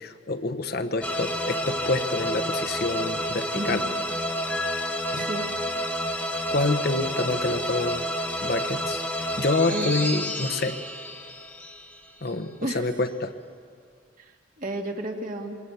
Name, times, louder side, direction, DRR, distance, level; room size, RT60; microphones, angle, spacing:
voice 1, 0.0-3.8 5.1-5.3 6.5-8.1 8.4-10.8 12.2-13.3, left 2 dB, 50° left, 7 dB, 1.1 m, -27 dB
sound 1, 1.0-12.4, equal, 5° left, 1.3 m, -30 dB
voice 2, 3.5-3.9 5.1-5.5 9.6-10.0 12.6-12.9 14.2-15.7, right 1 dB, 40° right, 2 dB, 2.1 m, -33 dB
25.5 x 21.5 x 7.2 m, 2.2 s
head